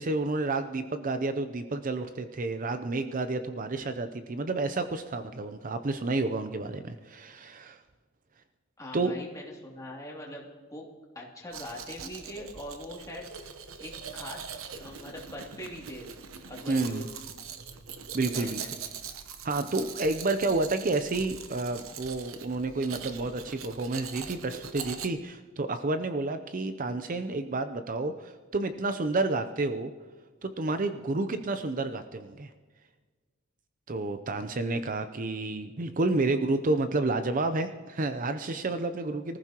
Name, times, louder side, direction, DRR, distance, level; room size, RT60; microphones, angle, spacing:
voice 1, 0.0-7.8 8.9-9.1 16.7-17.1 18.1-18.6 19.4-29.9 30.4-32.5 33.9-39.4, right 2 dB, 40° right, 9 dB, 0.6 m, -30 dB
voice 2, 8.8-10.9 11.1-13.3 13.8-14.4 14.7-16.1 16.5-17.1 18.3-18.7, left 1 dB, 15° left, -3 dB, 2.7 m, -42 dB
Domestic sounds home sounds, 11.5-25.1, right 7 dB, 80° right, 1.0 m, -42 dB
24.5 x 14.5 x 3.0 m, 1.4 s
head